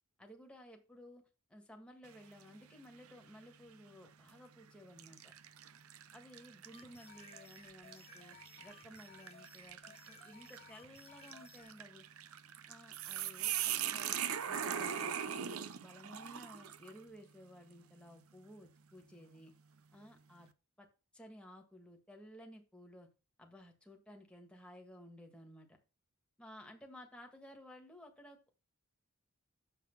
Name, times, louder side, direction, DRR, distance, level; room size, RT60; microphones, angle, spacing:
voice 1, 0.2-5.3 6.1-12.0 12.7-14.2 14.5-19.5 19.9-20.5 20.8-20.9 21.1-23.1 23.4-25.8 26.4-28.6, equal, 5° left, 2 dB, 1.7 m, -56 dB
sound 1, 2.1-2.5 3.0-3.2 4.1-4.4 5.0-17.0, right 9 dB, 85° right, 0.6 m, -41 dB
sound 2, 6.7-11.8, left 6 dB, 30° left, 1.0 m, -60 dB
7.3 x 6.0 x 5.8 m, 0.31 s
head